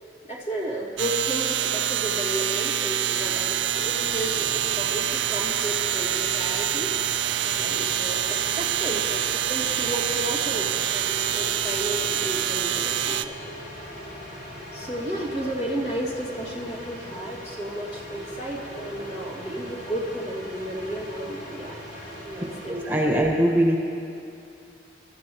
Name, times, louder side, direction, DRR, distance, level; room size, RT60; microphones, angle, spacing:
voice 1, 0.3-6.9 7.4-9.2 9.5-13.3 14.7-21.8 22.2-23.2, right 1 dB, 40° left, -2 dB, 2.4 m, -33 dB
sound 1, 1.0-13.3, right 10 dB, 85° right, 0.5 m, -26 dB
sound 2, 3.1-23.0, equal, 60° left, 3.4 m, -40 dB
voice 2, 22.7-23.8, right 1 dB, 10° right, -1 dB, 1.5 m, -21 dB
27.0 x 13.5 x 3.1 m, 2.6 s
head